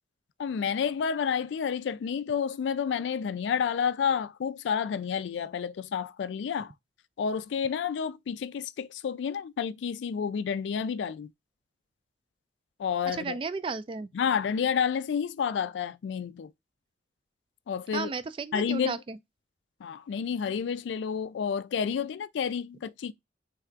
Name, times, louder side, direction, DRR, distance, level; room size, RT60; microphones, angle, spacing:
voice 1, 0.4-6.7 7.2-11.3 12.8-13.4 14.1-16.5 17.7-18.1 18.5-18.9 19.8-23.1, left 7 dB, 90° left, 0.3 m, -30 dB
voice 2, 13.1-14.1 17.9-19.2, right 4 dB, 30° right, 0.3 m, -34 dB
3.4 x 2.4 x 4.4 m
head